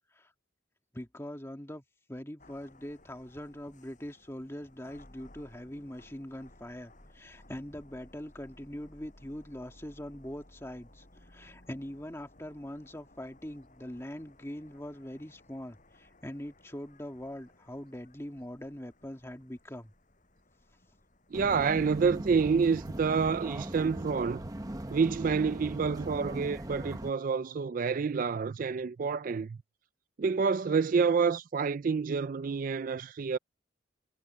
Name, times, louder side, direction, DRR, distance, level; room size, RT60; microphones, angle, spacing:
voice 1, 0.9-1.8 2.1-19.9, left 1 dB, 15° left, 1.9 m, -42 dB
sound 1, 2.4-22.1, left 1 dB, 40° left, 7.3 m, -59 dB
sound 2, 21.3-27.1, right 1 dB, 20° right, 1.0 m, -39 dB
voice 2, 21.3-24.4 24.9-29.6 30.2-33.4, right 5 dB, 45° right, 0.3 m, -28 dB
head